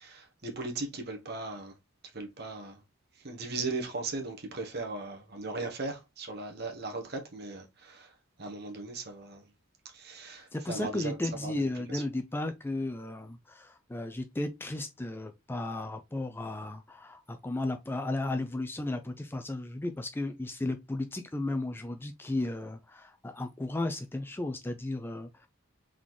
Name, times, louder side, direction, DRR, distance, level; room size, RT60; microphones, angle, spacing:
voice 1, 0.0-1.7 2.1-2.8 3.2-9.5 9.8-11.6 11.9-12.0, right 3 dB, 50° right, 1.1 m, -38 dB
voice 2, 10.5-25.5, left 2 dB, 10° left, 0.4 m, -34 dB
3.9 x 3.7 x 3.0 m
head